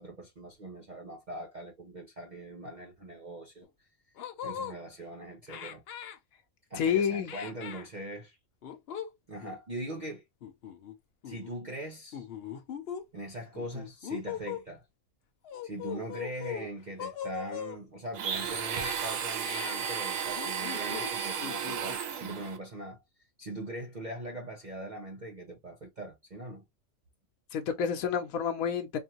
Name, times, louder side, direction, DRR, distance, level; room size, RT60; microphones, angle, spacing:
voice 1, 0.0-3.7 4.4-5.8 6.7-8.4 9.3-10.2 11.2-12.3 13.1-14.8 15.6-23.0 23.4-26.6, right 1 dB, 40° right, 0.9 m, -41 dB
sound 1, 3.6-3.7 4.2-4.8 5.5-6.2 7.3-7.9 8.6-9.1 9.4-9.6 10.4-10.9 11.2-11.5 12.1-13.0 13.5-14.6 15.4-16.7 17.0-17.8 18.6-19.0 19.4-19.8 20.3-21.1 21.4-22.0, left 9 dB, 60° left, 0.7 m, -39 dB
voice 2, 6.8-7.3 27.5-29.0, left 7 dB, 85° left, 1.1 m, -29 dB
Domestic sounds home sounds, 18.1-22.6, right 7 dB, 75° right, 1.2 m, -34 dB
4.4 x 2.6 x 2.8 m
omnidirectional pair, 1.4 m